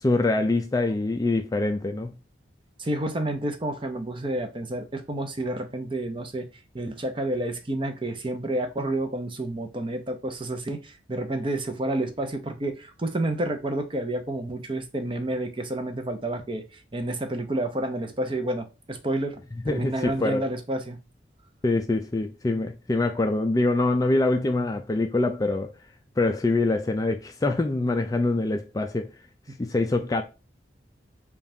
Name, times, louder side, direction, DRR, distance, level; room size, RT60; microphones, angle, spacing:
voice 1, 0.0-2.1 19.7-20.5 21.6-25.7 26.2-29.1 29.6-30.2, left 2 dB, 20° left, 0.3 m, -24 dB
voice 2, 2.8-16.6 16.9-19.4 19.7-21.0, right 1 dB, 25° right, 0.6 m, -30 dB
5.1 x 2.4 x 2.7 m
head